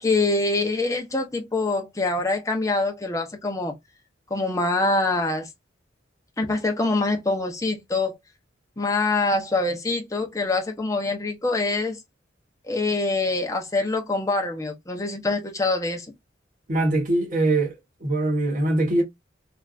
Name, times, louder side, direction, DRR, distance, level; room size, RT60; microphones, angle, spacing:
voice 1, 0.0-3.7 4.3-5.5 6.4-8.1 8.8-12.0 12.7-16.1, left 2 dB, 15° left, 0.6 m, -24 dB
voice 2, 16.7-19.0, right 2 dB, 40° right, 1.2 m, -22 dB
3.3 x 2.5 x 2.4 m
head